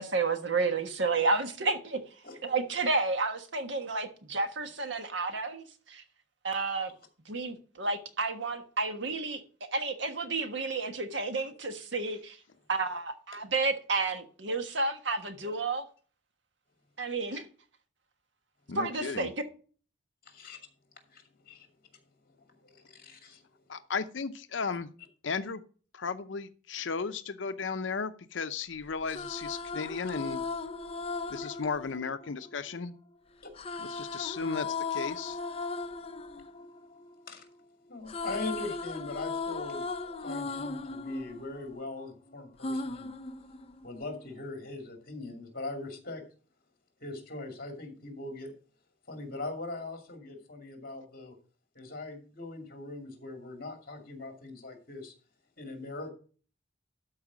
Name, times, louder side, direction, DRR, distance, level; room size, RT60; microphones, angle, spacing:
voice 1, 0.0-2.0 2.4-6.0 6.4-6.9 7.3-9.4 9.7-12.4 12.7-15.8 17.0-17.4 18.7-19.3, right 3 dB, 70° right, 1.3 m, -31 dB
voice 2, 18.7-19.3 23.7-24.9 25.2-25.6 25.9-30.4 31.3-32.9 33.8-35.4, left 5 dB, 75° left, 0.6 m, -35 dB
voice 3, 20.3-20.6 21.1-21.7 22.4-23.5 37.3-37.5 37.9-43.1 43.8-46.2 47.0-48.5 49.1-51.3 51.7-55.1 55.6-56.1, left 2 dB, 45° left, 2.4 m, -41 dB
sound 1, 28.9-33.0 33.6-37.6 37.9-42.1 42.6-44.1, left 4 dB, 30° left, 0.6 m, -37 dB
12.5 x 4.8 x 6.0 m
head